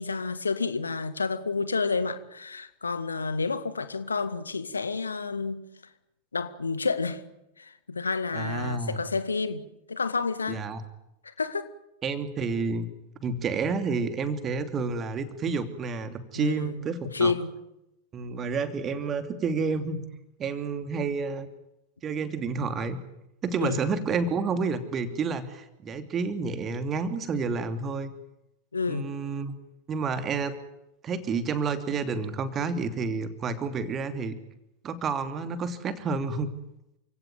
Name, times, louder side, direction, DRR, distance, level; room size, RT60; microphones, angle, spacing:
voice 1, 0.0-5.6 6.3-7.2 7.6-10.6 11.4-11.6 16.3-16.8 17.0-17.5 23.6-23.8 28.7-29.2, left 4 dB, 75° left, 12 dB, 2.0 m, -30 dB
voice 2, 8.3-9.0 10.5-10.8 12.0-12.9 13.2-17.3 18.1-20.0 20.4-21.5 22.0-23.0 23.4-28.1 28.9-29.5 29.9-30.6 31.0-34.4 34.8-36.5, right 4 dB, 25° right, 10 dB, 2.9 m, -30 dB
29.0 x 17.5 x 9.4 m, 0.87 s
figure-of-eight pair, 90°, 0 cm